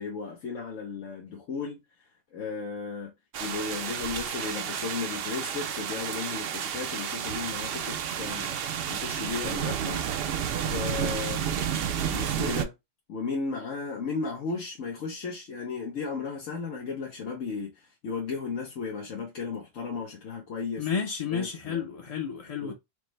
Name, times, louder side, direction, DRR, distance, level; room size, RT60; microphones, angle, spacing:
voice 1, 0.0-1.8 2.3-3.1 3.4-8.6 8.9-10.0 10.6-11.5 12.0-12.7 13.1-21.0 21.3-21.9 22.6-22.7, left 5 dB, 85° left, 1.3 m, -35 dB
Rain and Thunder in stereo, 3.3-12.6, right 8 dB, 60° right, 0.7 m, -31 dB
voice 2, 20.8-22.7, left 6 dB, 40° left, 0.6 m, -31 dB
5.0 x 2.1 x 3.2 m
omnidirectional pair, 1.3 m